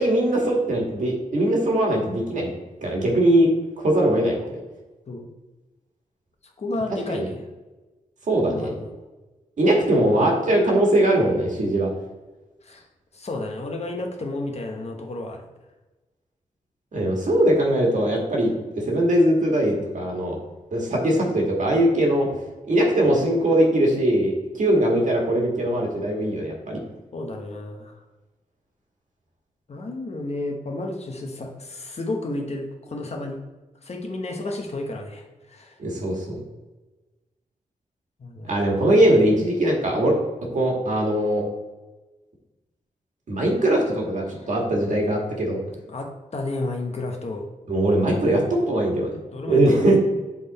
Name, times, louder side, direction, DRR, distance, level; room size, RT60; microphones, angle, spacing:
voice 1, 0.0-2.5 2.8-3.5 3.8-4.5 7.1-7.3 8.3-8.7 9.6-11.9 16.9-18.5 18.9-20.3 20.7-22.3 22.7-26.8 35.8-36.4 38.5-40.2 40.5-41.4 43.3-45.6 47.7-49.2 49.5-50.0, right 1 dB, 65° right, -1 dB, 1.7 m, -21 dB
voice 2, 6.6-7.4 8.4-8.9 12.6-12.8 13.1-15.4 27.1-28.0 29.7-33.4 33.8-35.8 38.2-38.5 44.3-44.5 45.9-47.5 49.3-49.9, left 2 dB, 50° left, 2 dB, 1.0 m, -32 dB
7.5 x 3.7 x 4.1 m, 1.2 s
wide cardioid pair, 105°, 14 cm